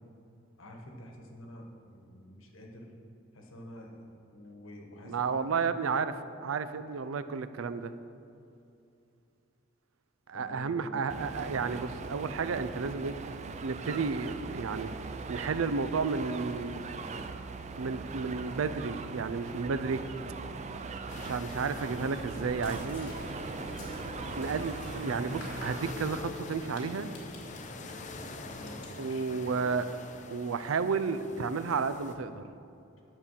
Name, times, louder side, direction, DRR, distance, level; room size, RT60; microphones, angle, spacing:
voice 1, 0.6-2.9 3.3-4.1 4.3-5.8 10.3-11.5 28.6-29.6, equal, 85° left, 1 dB, 1.4 m, -48 dB
voice 2, 5.0-6.1 6.4-7.9 10.3-13.2 13.6-14.9 15.3-16.8 17.8-20.0 21.1-23.1 24.4-27.1 29.0-29.9 30.2-32.4, right 5 dB, 90° right, 12 dB, 0.5 m, -32 dB
sound 1, 11.1-25.9, right 4 dB, 35° right, 0.4 m, -40 dB
sound 2, 21.1-32.1, left 3 dB, 40° left, 0.6 m, -47 dB
sound 3, 22.3-28.9, left 1 dB, 60° left, 2.1 m, -44 dB
9.6 x 6.8 x 5.6 m, 2.6 s
head